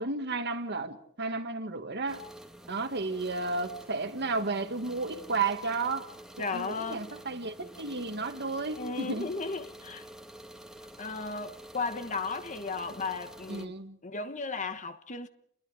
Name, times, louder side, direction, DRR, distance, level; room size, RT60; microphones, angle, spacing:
voice 1, 0.0-2.2 2.7-6.1 6.4-9.3 13.5-14.0, right 3 dB, 55° right, 1.8 m, -33 dB
sound 1, 2.1-13.7, right 1 dB, 5° right, 1.5 m, -48 dB
voice 2, 6.4-7.0 8.8-10.1 11.0-13.8 14.0-15.3, left 4 dB, 35° left, 1.3 m, -35 dB
29.0 x 21.0 x 5.0 m
head